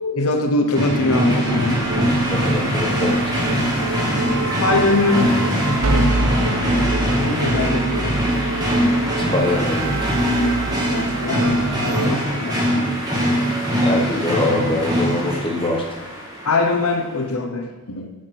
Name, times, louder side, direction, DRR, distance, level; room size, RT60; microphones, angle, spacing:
voice 1, 0.0-1.9 4.6-5.4 7.2-8.5 10.9-12.6 16.4-18.1, left 3 dB, 75° left, 5 dB, 0.9 m, -22 dB
sound 1, 0.7-16.5, equal, 15° right, 2.1 m, -22 dB
sound 2, 1.4-12.1, right 2 dB, 70° right, 0.8 m, -26 dB
voice 2, 2.3-3.3 9.2-10.0 13.8-15.8, left 2 dB, 25° left, 0 dB, 1.1 m, -23 dB
7.3 x 6.4 x 6.0 m, 1.2 s
head